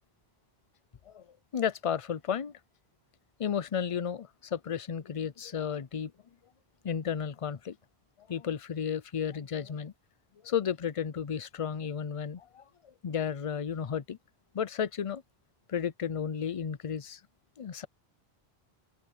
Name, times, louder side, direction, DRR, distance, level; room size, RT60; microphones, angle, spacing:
voice 1, 1.5-2.5 3.4-6.1 6.8-7.8 8.2-9.9 10.4-14.2 14.5-15.2 15.7-17.2 17.6-17.9, left 7 dB, 40° left, 0.6 m, -33 dB
open air
omnidirectional pair, 1.1 m